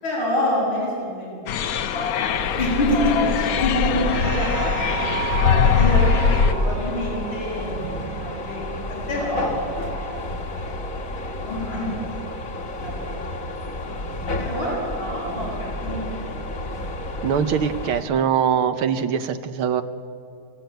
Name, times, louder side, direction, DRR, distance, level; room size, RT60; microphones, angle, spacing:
voice 1, 0.0-9.5 9.8-11.9 12.3-12.6 13.0-13.2 13.9-14.0 14.4-16.4, left 1 dB, 90° left, -6 dB, 8.1 m, -28 dB
sound 1, 1.5-6.5, left 6 dB, 60° left, 0.9 m, -21 dB
sound 2, 2.3-18.0, left 2 dB, 45° left, 1.9 m, -32 dB
sound 3, 4.1-8.8, right 9 dB, 60° right, 2.0 m, -32 dB
voice 2, 17.2-19.8, right 8 dB, 90° right, 9 dB, 1.9 m, -22 dB
26.5 x 15.5 x 9.2 m, 2.5 s
omnidirectional pair, 2.2 m